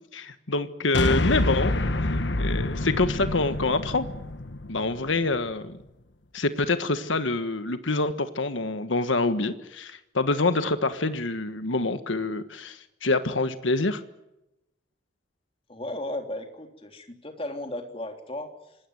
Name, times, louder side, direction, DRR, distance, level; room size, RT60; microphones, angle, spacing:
voice 1, 0.1-1.8 2.4-4.0 4.7-5.8 6.3-14.0, left 3 dB, 80° left, 10 dB, 1.5 m, -26 dB
sound 1, 0.9-5.4, left 2 dB, 65° left, 1.3 m, -27 dB
voice 2, 15.7-18.8, left 1 dB, 30° left, 5 dB, 3.4 m, -35 dB
26.0 x 20.5 x 7.9 m, 0.92 s
head